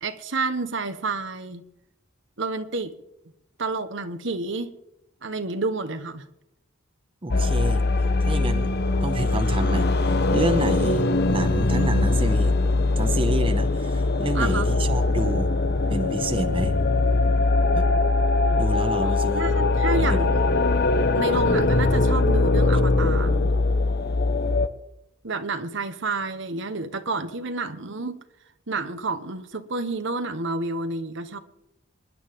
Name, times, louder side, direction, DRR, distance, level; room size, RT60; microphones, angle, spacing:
voice 1, 0.0-1.6 2.4-2.9 3.6-4.7 5.2-6.2 14.3-14.7 19.0-20.5 21.1-23.5 25.2-28.2 28.7-31.4, right 3 dB, 65° right, 8 dB, 1.3 m, -29 dB
voice 2, 7.2-7.8 8.2-8.7 9.0-12.6 13.0-15.5 15.9-16.8 17.7-17.9 18.5-19.5 19.9-20.3, right 1 dB, 25° right, 7 dB, 1.1 m, -29 dB
sound 1, 7.3-24.7, left 2 dB, 55° left, 0.9 m, -21 dB
27.0 x 11.0 x 3.7 m, 0.84 s
head